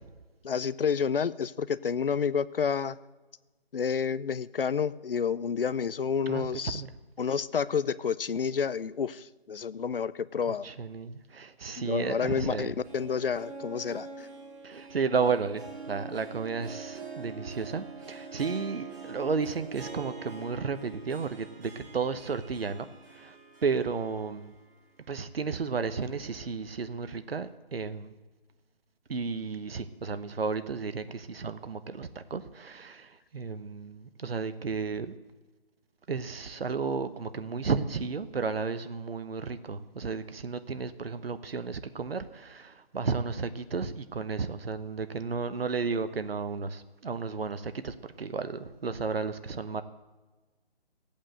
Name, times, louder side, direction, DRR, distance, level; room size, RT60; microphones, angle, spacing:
voice 1, 0.4-3.0 3.7-6.8 7.2-10.7 11.8-14.3, left 6 dB, 60° left, 18 dB, 0.6 m, -29 dB
voice 2, 6.3-7.0 10.5-12.7 14.6-22.9 23.1-23.4 23.6-24.5 25.1-28.1 29.1-35.1 36.1-49.8, right 5 dB, 70° right, 11 dB, 1.0 m, -33 dB
Harp, 12.6-24.7 25.1-25.2 26.0-26.1, right 4 dB, 20° right, 1.5 m, -44 dB
15.5 x 8.7 x 7.8 m, 1.2 s
figure-of-eight pair, 170°, 31 cm